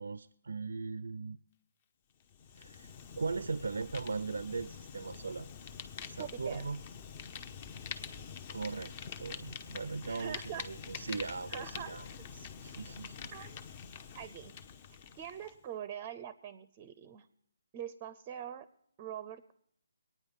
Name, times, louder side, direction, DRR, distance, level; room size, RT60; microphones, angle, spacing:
voice 1, 0.0-1.4 2.6-5.5 6.1-6.8 8.5-8.9 9.2-12.1 12.3-13.3, right 4 dB, 80° right, 17 dB, 0.5 m, -39 dB
Fire, 2.2-15.6, left 7 dB, 30° left, 0.8 m, -46 dB
voice 2, 6.2-6.7 10.0-10.6 10.9-11.0 11.5-12.2 13.3-13.6 14.1-14.6 15.2-17.3 17.7-18.7 19.0-19.5, right 10 dB, 25° right, 14 dB, 0.5 m, -44 dB
21.0 x 9.3 x 5.3 m, 0.70 s
hypercardioid pair, 160°, 0 cm